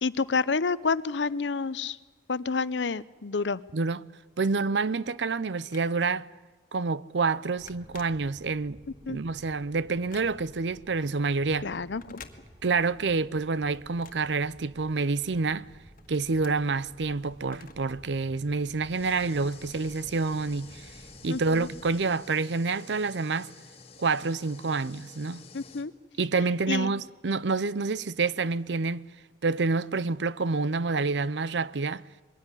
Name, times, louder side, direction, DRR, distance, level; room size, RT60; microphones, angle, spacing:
voice 1, 0.0-2.0 2.3-3.6 9.1-9.2 11.6-12.2 21.3-21.7 25.5-25.9 26.7-26.9, left 4 dB, 90° left, 0.7 m, -29 dB
voice 2, 3.7-4.0 4.4-6.3 6.7-8.8 9.1-11.7 12.6-15.7 16.1-20.9 21.2-23.5 24.0-25.4 26.2-29.1 29.4-32.0, right 4 dB, 85° right, 0.7 m, -28 dB
Telephone, 5.0-6.3 6.8-7.0 7.2-8.7 9.2-10.7 11.9-13.0 13.3-15.1 15.5-18.0 18.3-18.4 19.3-19.4, left 6 dB, 50° left, 1.7 m, -53 dB
sound 1, 7.6-22.1, equal, 30° right, 1.7 m, -53 dB
sound 2, 18.9-25.9, left 4 dB, 35° left, 1.8 m, -50 dB
22.5 x 16.5 x 9.9 m
head